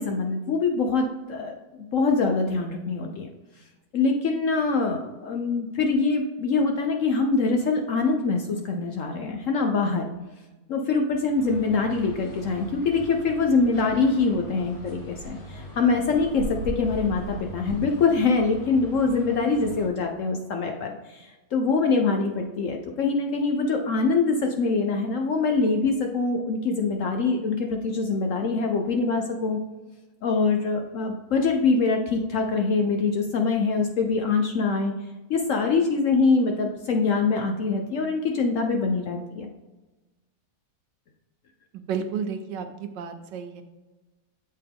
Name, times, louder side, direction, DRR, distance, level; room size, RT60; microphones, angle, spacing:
voice 1, 0.0-1.5 1.9-3.6 3.9-10.1 10.7-29.6 30.2-34.9 35.3-39.5, left 4 dB, 65° left, 3 dB, 0.8 m, -24 dB
sound 1, 11.3-19.9, left 1 dB, 90° left, 2.0 m, -43 dB
sound 2, 14.4-14.5 14.9-15.3 15.7-17.9 19.0-19.1, right 2 dB, 50° right, 1.1 m, -37 dB
voice 2, 41.7-43.6, right 6 dB, 90° right, 7 dB, 1.4 m, -32 dB
7.6 x 4.3 x 3.5 m, 1.1 s
omnidirectional pair, 1.9 m